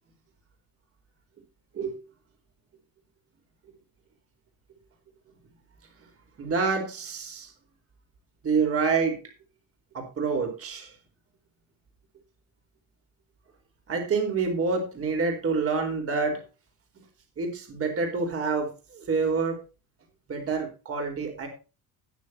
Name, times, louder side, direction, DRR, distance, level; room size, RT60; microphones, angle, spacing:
voice 1, 6.4-7.5 8.4-9.2 9.9-10.9 13.9-16.4 17.4-19.6 20.3-21.5, right 4 dB, 40° right, 3 dB, 4.4 m, -27 dB
19.5 x 7.1 x 2.9 m, 0.32 s
cardioid pair, 115°, 37 cm